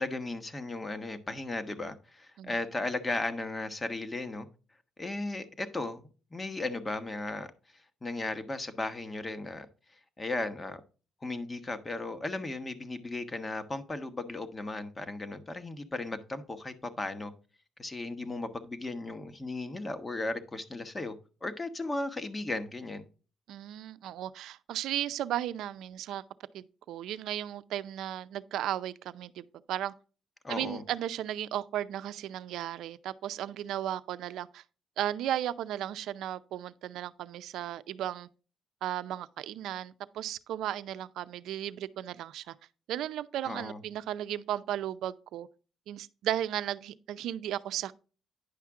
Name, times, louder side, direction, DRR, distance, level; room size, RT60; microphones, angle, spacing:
voice 1, 0.0-4.5 5.0-7.5 8.0-9.7 10.2-10.8 11.2-17.3 17.8-21.1 21.4-23.1 30.4-30.8 43.4-43.8, left 2 dB, 25° left, 1.2 m, -36 dB
voice 2, 23.5-26.2 26.5-29.9 30.5-34.6 35.0-38.3 38.8-42.5 42.9-45.5 45.9-47.9, right 12 dB, 80° right, 0.5 m, -35 dB
10.0 x 5.8 x 3.6 m
cardioid pair, 90°, 0 cm